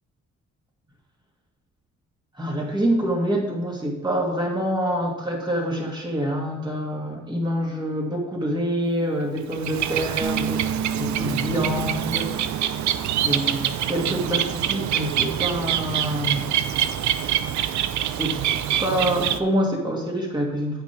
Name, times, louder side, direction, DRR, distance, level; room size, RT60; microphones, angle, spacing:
voice 1, 2.4-10.6 10.9-12.4 13.2-16.5 18.1-18.4 18.8-20.8, equal, 15° right, -1 dB, 2.7 m, -26 dB
Bird, 9.4-19.4, right 11 dB, 70° right, 0.7 m, -25 dB
Bass guitar, 10.2-14.5 14.8-16.4, right 6 dB, 35° right, 1.5 m, -34 dB
9.2 x 8.3 x 3.6 m, 1.1 s
cardioid pair, 90°, 30 cm